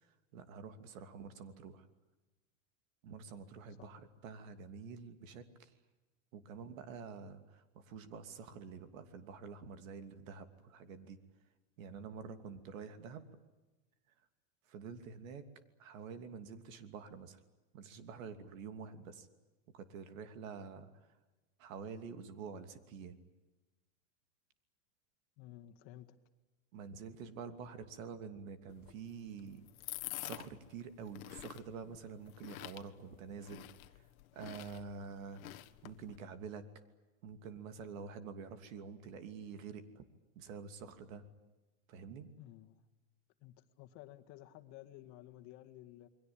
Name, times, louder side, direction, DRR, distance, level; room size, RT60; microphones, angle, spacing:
voice 1, 0.0-1.9 3.0-5.7 6.3-11.2 11.8-13.3 14.7-15.5 15.8-17.4 17.7-19.3 19.7-21.1 21.6-23.2 26.7-29.6 30.2-36.7 37.2-40.0 40.3-41.3 41.9-42.3, right 6 dB, 70° right, 10 dB, 2.9 m, -48 dB
voice 2, 25.4-26.2 42.4-42.8 43.4-46.1, left 14 dB, 40° left, 7 dB, 1.9 m, -54 dB
sound 1, 28.7-36.2, left 16 dB, 80° left, 1.5 m, -49 dB
28.5 x 22.5 x 8.8 m, 1.1 s
supercardioid pair, 160°, 41 cm